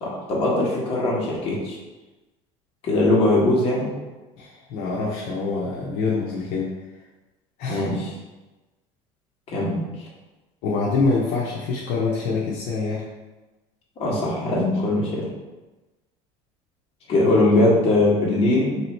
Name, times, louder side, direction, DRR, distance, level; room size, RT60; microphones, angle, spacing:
voice 1, 0.0-1.8 2.8-3.9 7.7-8.1 9.5-9.8 14.0-15.3 17.1-18.8, left 2 dB, 40° left, -5 dB, 1.4 m, -21 dB
voice 2, 4.4-6.7 7.6-7.8 10.6-13.0, left 4 dB, 75° left, -4 dB, 0.7 m, -25 dB
3.0 x 2.9 x 4.3 m, 1.1 s
cardioid pair, 130°, 15 cm